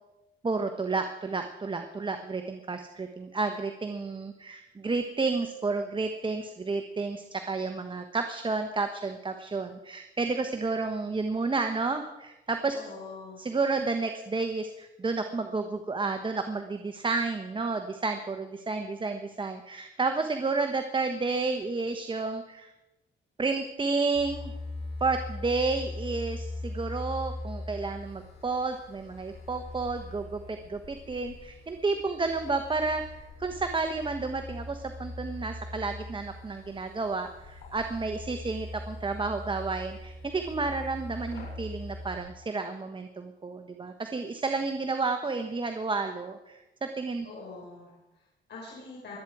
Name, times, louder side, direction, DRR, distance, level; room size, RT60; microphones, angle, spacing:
voice 1, 0.4-12.8 13.4-22.7 23.4-24.5 25.0-47.3, right 3 dB, 25° right, 7 dB, 1.2 m, -31 dB
voice 2, 12.7-13.4 47.2-49.2, left 3 dB, 60° left, -3 dB, 4.8 m, -44 dB
sound 1, 24.1-42.2, left 2 dB, 90° left, 7.1 m, -41 dB
23.5 x 9.3 x 4.8 m, 1.0 s
cardioid pair, 90°, 20 cm